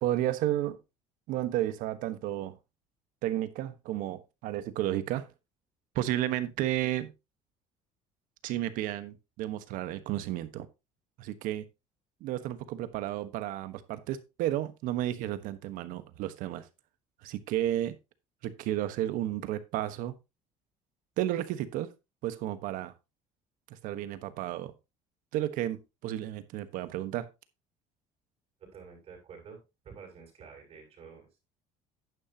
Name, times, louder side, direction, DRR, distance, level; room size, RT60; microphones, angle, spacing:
voice 1, 0.0-0.8 1.3-2.6 3.2-5.3 5.9-7.1 8.4-10.7 11.2-11.6 12.2-16.6 17.2-17.9 18.4-20.1 21.2-21.9 22.2-22.9 23.8-24.7 25.3-27.3, right 13 dB, 75° right, 1.3 m, -32 dB
voice 2, 28.6-31.3, right 6 dB, 45° right, 6.9 m, -49 dB
11.0 x 9.2 x 2.9 m
cardioid pair, 125°, 14 cm